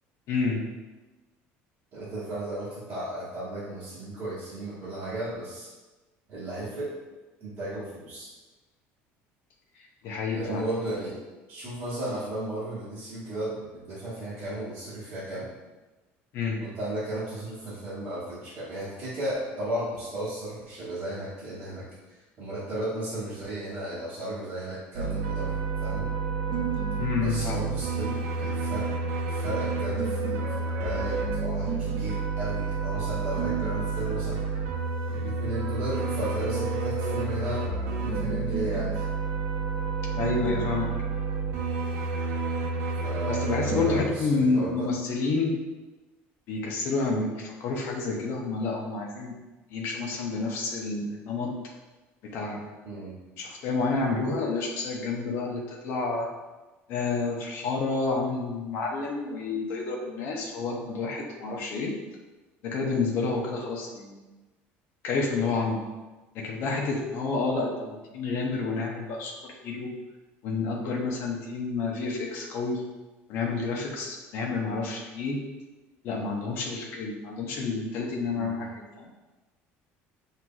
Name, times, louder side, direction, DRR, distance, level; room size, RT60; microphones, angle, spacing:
voice 1, 0.3-0.6 10.0-10.6 16.3-16.6 27.0-27.7 40.1-40.9 43.3-45.6 46.5-49.3 49.7-51.5 52.2-52.6 53.4-56.3 56.9-61.9 62.6-64.2 65.0-65.8 66.3-69.9 70.4-72.8 73.3-75.4 76.0-79.1, left 4 dB, 55° left, -1 dB, 0.8 m, -29 dB
voice 2, 1.9-5.7 6.3-6.9 7.4-8.3 10.3-11.2 11.5-15.5 16.6-21.8 22.4-26.1 27.1-28.9 29.2-34.4 35.1-37.6 38.0-39.0 43.0-44.9 52.8-53.1 78.4-78.6, right 1 dB, 35° right, -12 dB, 1.5 m, -35 dB
sound 1, 24.9-44.0, right 4 dB, 65° right, 0.7 m, -29 dB
Keyboard (musical), 36.5-38.6, right 2 dB, 10° right, 0.5 m, -43 dB
7.7 x 2.8 x 2.3 m, 1.2 s
cardioid pair, 165°, 5 cm